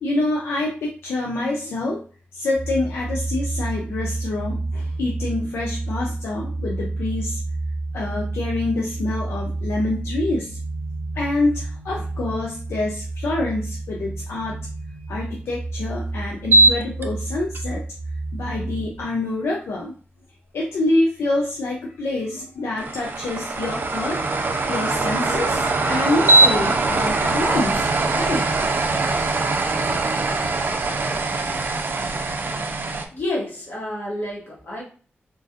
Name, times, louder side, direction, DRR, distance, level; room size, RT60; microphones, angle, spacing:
voice 1, 0.0-2.0 2.3-7.4 7.9-10.6 11.1-14.6 14.9-17.8 18.3-19.9 20.5-24.2 24.7-28.5 32.0-32.2, left 2 dB, 90° left, -1 dB, 0.5 m, -26 dB
sound 1, 2.5-19.0, right 2 dB, 45° left, 1.7 m, -30 dB
sound 2, 16.4-17.0 17.5-17.6 22.8-33.1, right 2 dB, 55° right, 0.5 m, -21 dB
voice 2, 33.1-34.8, left 1 dB, 60° left, -4 dB, 1.7 m, -29 dB
3.8 x 2.4 x 2.4 m, 0.39 s
cardioid pair, 60°, 4 cm